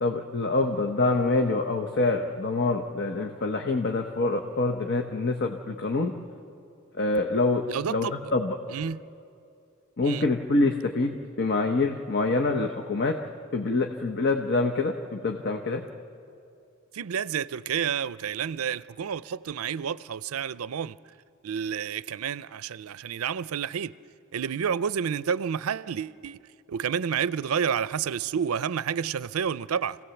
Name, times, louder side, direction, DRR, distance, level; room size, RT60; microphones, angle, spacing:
voice 1, 0.0-6.1 7.0-8.6 10.0-13.2 13.5-15.8, left 3 dB, 50° left, 1.0 m, -26 dB
voice 2, 7.7-8.1 8.7-9.0 10.0-10.3 16.9-21.0 21.4-23.9 24.3-26.4 26.7-30.0, right 7 dB, 80° right, 0.5 m, -30 dB
26.5 x 17.0 x 7.0 m
head